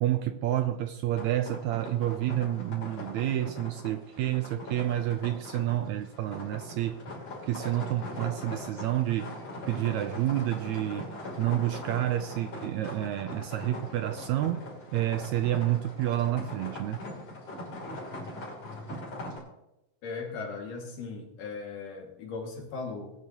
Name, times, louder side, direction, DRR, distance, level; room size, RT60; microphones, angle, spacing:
voice 1, 0.0-7.0 7.4-9.3 9.7-11.1 11.4-17.0, right 13 dB, 80° right, 1.7 m, -29 dB
sound 1, 1.1-19.4, left 1 dB, 50° left, 4.3 m, -41 dB
voice 2, 20.0-23.1, left 4 dB, 75° left, 3.7 m, -38 dB
20.0 x 11.0 x 3.0 m
omnidirectional pair, 3.7 m